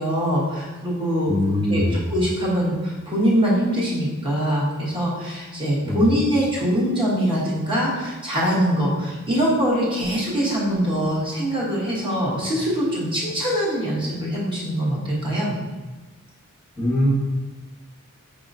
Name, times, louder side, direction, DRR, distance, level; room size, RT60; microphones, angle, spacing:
voice 1, 0.0-1.3 1.7-15.6, equal, 25° right, -5 dB, 0.9 m, -23 dB
voice 2, 1.3-2.0 5.8-6.1 16.8-17.1, left 1 dB, ahead, -8 dB, 1.4 m, -22 dB
4.8 x 2.8 x 2.5 m, 1.2 s
head